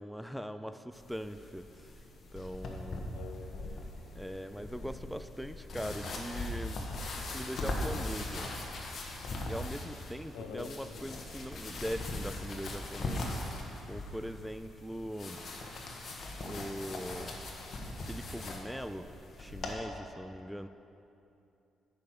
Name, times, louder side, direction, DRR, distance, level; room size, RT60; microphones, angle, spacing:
voice 1, 0.0-2.0 2.3-3.3 3.7-3.8 4.1-8.5 9.4-13.4 13.9-15.4 16.4-17.5 18.0-20.7, equal, ahead, 10 dB, 0.3 m, -41 dB
sound 1, 0.9-19.7, left 2 dB, 50° left, 1.3 m, -40 dB
voice 2, 3.1-3.8 10.3-10.7, left 5 dB, 90° left, 4 dB, 0.8 m, -45 dB
9.2 x 5.3 x 6.0 m, 2.7 s
cardioid pair, 90°, 0 cm